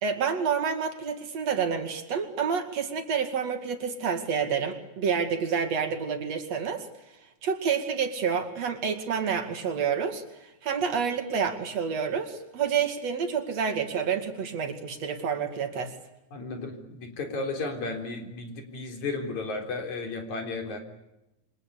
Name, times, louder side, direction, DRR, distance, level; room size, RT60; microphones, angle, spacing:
voice 1, 0.0-6.9 7.4-15.9, right 6 dB, 60° right, 6 dB, 3.4 m, -28 dB
voice 2, 16.3-20.8, left 3 dB, 75° left, 4 dB, 5.1 m, -34 dB
28.0 x 24.5 x 8.5 m, 0.92 s
omnidirectional pair, 3.4 m